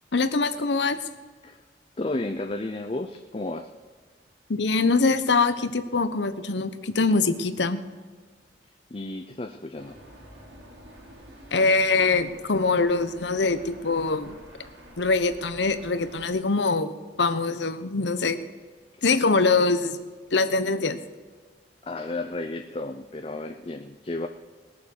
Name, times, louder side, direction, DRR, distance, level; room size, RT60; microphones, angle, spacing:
voice 1, 0.1-1.0 4.5-7.8 11.5-14.4 15.0-18.4 19.0-20.0 20.3-21.0, left 3 dB, 75° left, 11 dB, 0.9 m, -23 dB
voice 2, 2.0-3.7 8.9-10.0 21.8-24.3, left 2 dB, 30° left, 5 dB, 0.5 m, -32 dB
sound 1, 9.8-16.3, equal, 80° right, 3.6 m, -48 dB
20.0 x 7.1 x 6.5 m, 1.5 s
head